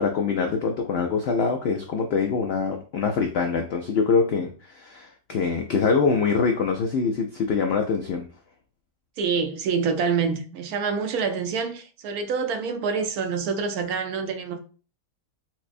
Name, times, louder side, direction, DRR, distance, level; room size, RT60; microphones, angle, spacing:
voice 1, 0.0-8.3, left 5 dB, 90° left, 0.5 m, -24 dB
voice 2, 9.2-14.6, right 5 dB, 75° right, 1.1 m, -26 dB
5.9 x 2.1 x 2.5 m
omnidirectional pair, 1.6 m